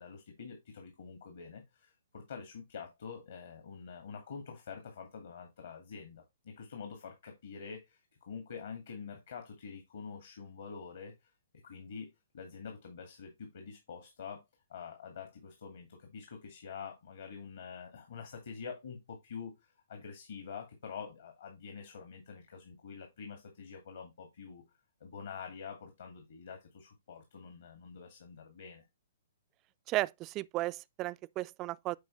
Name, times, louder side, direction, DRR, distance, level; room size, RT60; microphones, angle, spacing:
voice 1, 0.0-11.3 11.6-14.4 14.7-19.5 19.9-24.6 25.0-28.8, left 6 dB, 60° left, 2.1 m, -46 dB
voice 2, 29.9-32.0, right 17 dB, 30° right, 0.3 m, -34 dB
9.3 x 4.9 x 3.2 m
figure-of-eight pair, 120°, 0 cm